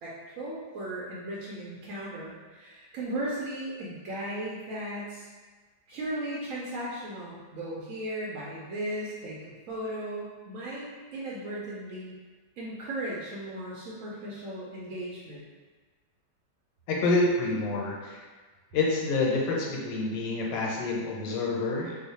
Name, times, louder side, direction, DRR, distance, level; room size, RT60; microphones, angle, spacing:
voice 1, 0.0-5.3 5.9-12.1 12.6-15.4, right 1 dB, 65° right, -6 dB, 0.8 m, -36 dB
voice 2, 16.9-18.3 18.7-22.0, left 3 dB, 90° left, -3 dB, 1.3 m, -27 dB
3.0 x 2.1 x 4.1 m, 1.4 s
omnidirectional pair, 1.9 m